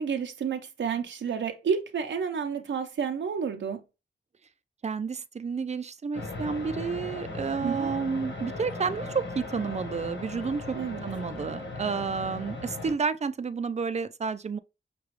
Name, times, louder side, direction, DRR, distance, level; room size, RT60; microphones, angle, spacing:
voice 1, 0.0-3.8 7.6-7.9 10.7-11.0, right 6 dB, 85° right, 0.6 m, -30 dB
voice 2, 4.8-10.8 11.0-14.6, right 5 dB, 35° right, 0.4 m, -31 dB
sound 1, 6.1-12.9, left 2 dB, 85° left, 1.3 m, -37 dB
5.9 x 2.3 x 3.1 m
wide cardioid pair, 85°, 19 cm